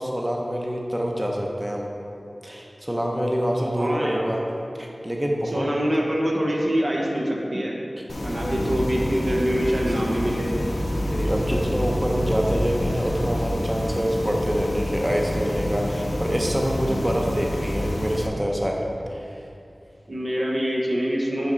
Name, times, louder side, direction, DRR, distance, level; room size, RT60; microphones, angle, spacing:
voice 1, 0.0-1.9 2.4-4.4 4.8-5.7 8.4-8.6 11.0-18.8 19.1-19.4, equal, 15° right, -1 dB, 0.6 m, -26 dB
voice 2, 3.7-4.3 5.5-7.8 8.2-10.5 20.1-21.5, equal, 65° right, -2 dB, 0.9 m, -25 dB
sound 1, 8.1-18.3, left 1 dB, 75° left, 0.5 m, -28 dB
sound 2, 10.5-17.8 18.2-19.0, equal, 40° right, 1.1 m, -33 dB
5.8 x 5.4 x 3.9 m, 2.6 s
wide cardioid pair, 50°, 0 cm